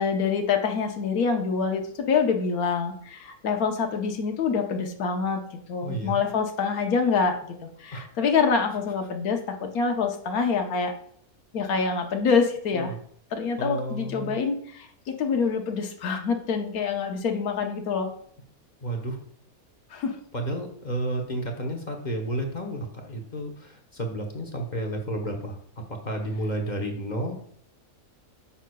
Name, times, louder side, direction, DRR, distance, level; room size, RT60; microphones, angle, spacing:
voice 1, 0.0-5.4 5.7-10.9 11.5-12.9 13.3-18.1 19.9-20.2, left 5 dB, 75° left, 4 dB, 1.4 m, -26 dB
voice 2, 5.8-6.2 7.9-8.0 12.7-13.0 13.6-14.4 18.8-19.2 20.3-25.6 26.0-27.4, right 1 dB, 35° left, 2 dB, 1.0 m, -31 dB
9.6 x 6.3 x 2.3 m, 0.63 s
omnidirectional pair, 1.6 m